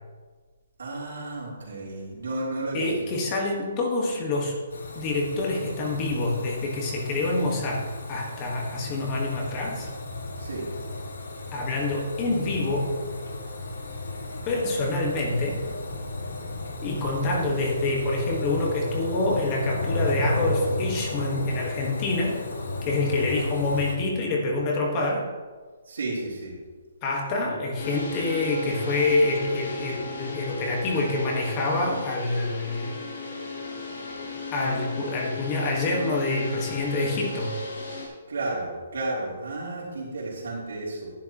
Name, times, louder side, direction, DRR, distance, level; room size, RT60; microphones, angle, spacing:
voice 1, 0.8-3.1 10.4-10.7 23.0-23.5 25.9-26.5 38.3-41.1, right 2 dB, 80° right, -5 dB, 3.1 m, -32 dB
voice 2, 2.7-4.6 4.9-9.9 11.5-12.9 14.5-15.6 16.8-22.4 22.8-25.3 27.0-32.9 34.5-37.6, left 2 dB, 20° left, 0 dB, 1.4 m, -26 dB
sound 1, 4.7-23.9, left 2 dB, 90° left, 2.0 m, -33 dB
sound 2, 27.8-38.1, left 3 dB, 60° left, 3.3 m, -36 dB
11.0 x 10.5 x 3.0 m, 1.4 s
hypercardioid pair, 170°, 0 cm